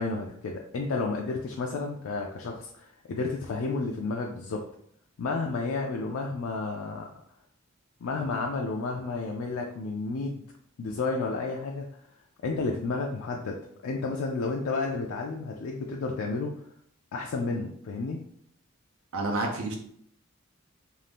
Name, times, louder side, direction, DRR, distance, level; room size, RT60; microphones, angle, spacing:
voice 1, 0.0-4.6 5.2-7.1 8.0-10.4 10.8-11.9 12.4-16.5 17.1-18.2, left 3 dB, 75° left, 0 dB, 0.4 m, -31 dB
voice 2, 19.1-19.8, right 2 dB, 75° right, 2 dB, 0.7 m, -29 dB
2.6 x 2.5 x 3.3 m, 0.66 s
head